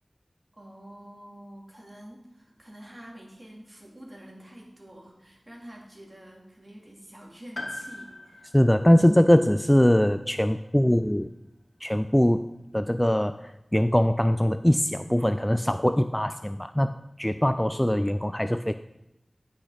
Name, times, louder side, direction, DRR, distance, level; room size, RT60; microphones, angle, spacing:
voice 1, 0.5-8.5, right 1 dB, 30° right, -2 dB, 2.9 m, -47 dB
Piano, 7.5-11.4 11.7-11.8 12.9-13.0, left 2 dB, 45° left, 1.5 m, -43 dB
voice 2, 8.5-11.3 11.8-12.5 12.7-18.7, equal, 10° left, 10 dB, 0.3 m, -22 dB
10.5 x 6.1 x 5.0 m, 0.90 s
wide cardioid pair, 55°, 0 cm